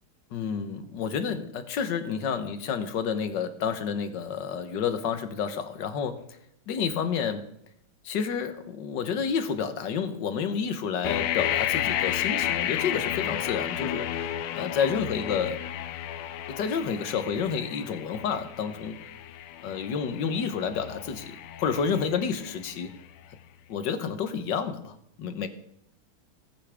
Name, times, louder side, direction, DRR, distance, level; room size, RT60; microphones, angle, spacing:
voice 1, 0.3-6.2 6.7-7.4 8.0-14.3 14.5-15.6 16.5-19.0 19.6-22.9 23.7-25.5, left 6 dB, 60° left, 10 dB, 1.5 m, -30 dB
sound 1, 11.0-22.8, left 11 dB, 80° left, 1.6 m, -32 dB
19.5 x 8.7 x 3.5 m, 0.77 s
omnidirectional pair, 2.4 m